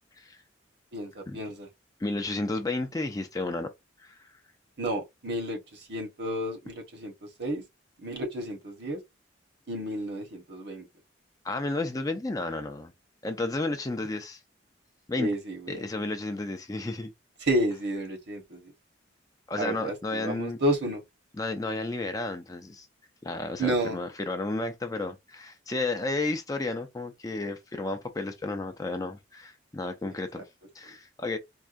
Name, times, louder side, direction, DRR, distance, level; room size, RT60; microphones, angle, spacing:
voice 1, 0.9-1.7 4.8-5.6 5.9-7.1 7.4-7.6 8.0-9.0 9.7-10.9 15.2-15.8 17.4-18.6 19.6-21.0 23.6-24.0, right 1 dB, 55° right, 1.2 m, -31 dB
voice 2, 2.0-3.7 4.0-4.3 11.4-12.9 13.2-14.4 15.1-15.3 15.7-17.1 19.5-20.6 21.3-22.9 23.2-30.5 30.7-31.4, left 2 dB, 20° left, 0.4 m, -32 dB
4.5 x 2.3 x 2.5 m
head